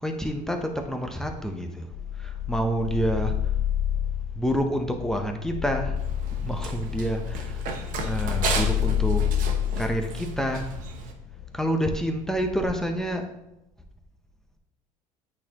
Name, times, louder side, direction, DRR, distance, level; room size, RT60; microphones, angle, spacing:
voice 1, 0.0-1.9 2.2-3.4 4.3-6.0 6.4-7.6 8.0-9.3 9.8-10.7 11.5-13.2, equal, 5° left, 4 dB, 0.6 m, -28 dB
sound 1, 1.9-11.8 12.3-13.1, left 10 dB, 50° left, 0.4 m, -29 dB
Run, 6.0-11.1, right 5 dB, 55° right, 1.0 m, -34 dB
8.6 x 4.2 x 2.8 m, 0.89 s
supercardioid pair, 115°, 16 cm